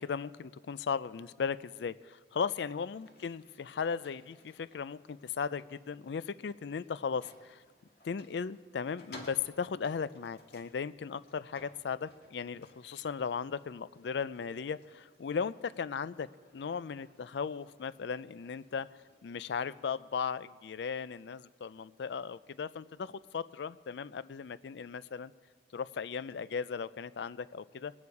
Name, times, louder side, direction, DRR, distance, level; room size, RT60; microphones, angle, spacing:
voice 1, 0.0-7.6 8.0-18.9 19.2-25.3 25.7-27.9, left 6 dB, 80° left, 17 dB, 0.4 m, -37 dB
sound 1, 2.7-19.9, left 1 dB, 55° left, 2.6 m, -59 dB
23.0 x 9.5 x 4.8 m, 1.5 s
head